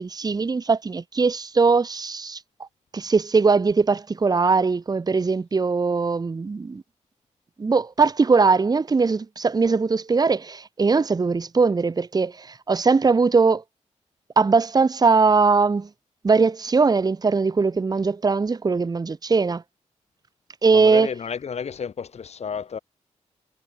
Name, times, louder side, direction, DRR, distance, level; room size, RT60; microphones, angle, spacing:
voice 1, 0.0-2.4 2.9-6.8 7.6-13.6 14.4-15.9 16.2-19.6 20.6-21.1, right 4 dB, 30° right, 1.0 m, -20 dB
voice 2, 20.7-22.8, left 6 dB, 60° left, 2.7 m, -31 dB
cardioid pair, 80°, 12 cm